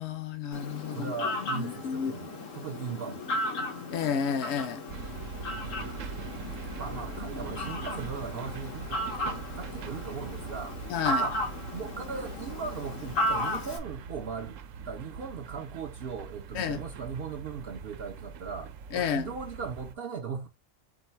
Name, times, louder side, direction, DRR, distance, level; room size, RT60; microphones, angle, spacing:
voice 1, 0.0-1.1 1.4-2.1 3.9-4.8 10.9-11.3 16.5-16.8 18.9-19.3, left 7 dB, 65° left, 0.9 m, -31 dB
Fowl, 0.5-13.8, left 1 dB, 85° left, 1.5 m, -35 dB
voice 2, 0.9-3.3 6.8-10.8 11.2-11.4 11.7-14.6 14.9-20.5, right 6 dB, 60° right, 0.7 m, -38 dB
sound 1, 4.9-19.9, right 6 dB, 85° right, 1.0 m, -42 dB
4.6 x 2.6 x 4.4 m
omnidirectional pair, 1.3 m